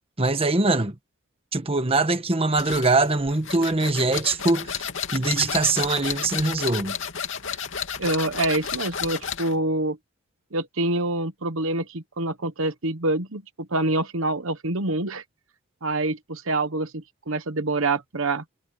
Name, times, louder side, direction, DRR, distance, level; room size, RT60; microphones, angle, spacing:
voice 1, 0.2-1.0 1.5-4.8 5.1-7.0, right 3 dB, 25° right, 1.3 m, -22 dB
sound 1, 2.6-9.6, left 7 dB, 60° left, 2.8 m, -32 dB
voice 2, 8.0-10.0 10.5-15.2 15.8-18.4, right 2 dB, 65° right, 1.2 m, -26 dB
head